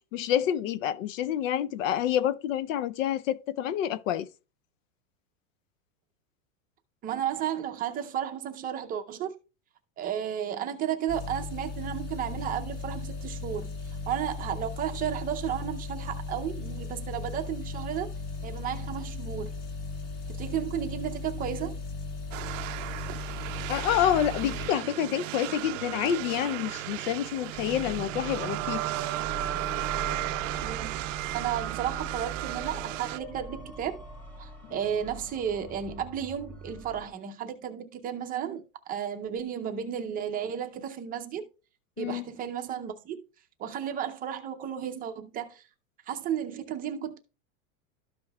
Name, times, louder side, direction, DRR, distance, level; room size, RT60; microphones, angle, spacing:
voice 1, 0.1-4.3 23.7-28.8 34.7-34.8 42.0-42.2, left 10 dB, 65° left, 0.6 m, -28 dB
voice 2, 7.0-9.3 10.0-18.1 18.4-19.5 20.3-21.8 30.6-31.1 31.3-34.0 34.4-41.5 42.0-43.2 43.6-45.6 46.1-47.2, right 9 dB, 20° right, 0.6 m, -33 dB
sound 1, 11.1-24.7, left 4 dB, 50° left, 1.7 m, -37 dB
sound 2, 22.3-33.2, right 17 dB, 65° right, 0.5 m, -34 dB
sound 3, 27.5-37.1, equal, 5° left, 1.7 m, -42 dB
13.0 x 5.2 x 2.3 m
supercardioid pair, 150°, 42 cm